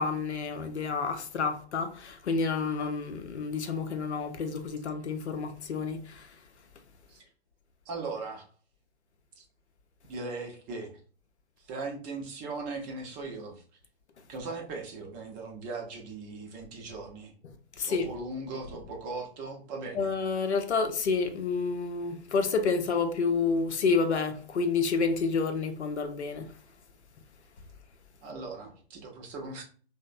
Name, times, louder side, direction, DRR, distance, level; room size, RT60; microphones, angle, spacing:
voice 1, 0.0-6.4 17.8-18.1 19.9-26.6, left 4 dB, 85° left, 0.6 m, -29 dB
voice 2, 7.9-8.4 9.4-9.5 10.1-10.9 11.6-13.6 14.3-17.3 17.8-20.1 28.2-29.6, right 3 dB, 25° right, 0.5 m, -39 dB
3.0 x 2.0 x 2.4 m
figure-of-eight pair, 115°, 33 cm